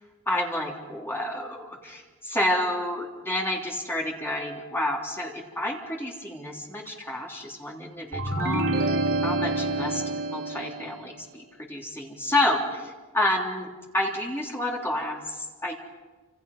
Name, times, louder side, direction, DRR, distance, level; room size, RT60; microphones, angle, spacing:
voice 1, 0.3-8.6 9.2-12.9 13.1-15.7, left 1 dB, 10° left, -1 dB, 3.3 m, -29 dB
sound 1, 8.1-10.9, right 2 dB, 75° right, 3.3 m, -27 dB
28.0 x 27.0 x 5.5 m, 1.3 s
head